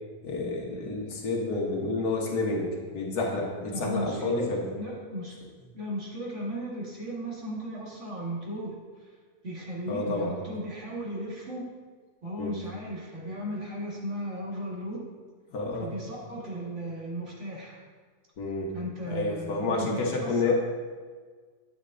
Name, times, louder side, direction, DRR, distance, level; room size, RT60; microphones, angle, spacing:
voice 1, 0.2-4.7 9.9-10.3 12.4-12.5 15.5-15.9 18.4-18.7 19.1-20.5, left 3 dB, 75° left, -2 dB, 1.8 m, -29 dB
voice 2, 3.7-4.5 4.8-5.4 5.7-9.1 9.4-11.7 12.2-15.0 15.8-17.8 18.7-20.5, equal, 50° right, -5 dB, 2.2 m, -36 dB
9.5 x 8.9 x 2.7 m, 1.5 s
omnidirectional pair, 1.7 m